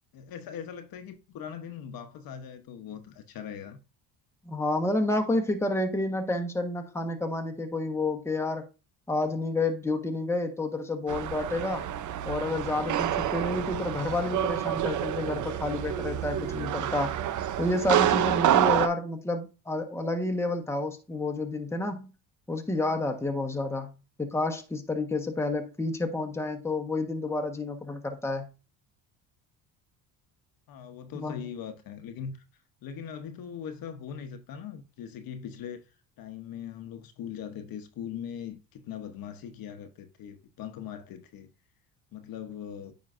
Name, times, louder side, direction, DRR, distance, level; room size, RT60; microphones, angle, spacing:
voice 1, 0.1-3.8 30.7-32.4 32.8-35.8 36.2-41.5 42.1-42.9, left 8 dB, 60° left, 1.0 m, -40 dB
voice 2, 4.5-8.6 9.1-11.9 12.2-17.2 17.6-22.1 22.5-23.9 24.2-28.5 31.1-31.4, left 2 dB, 5° left, 1.3 m, -30 dB
sound 1, 11.1-18.9, right 11 dB, 50° right, 0.7 m, -28 dB
9.2 x 4.9 x 2.6 m
supercardioid pair, 90°, 39 cm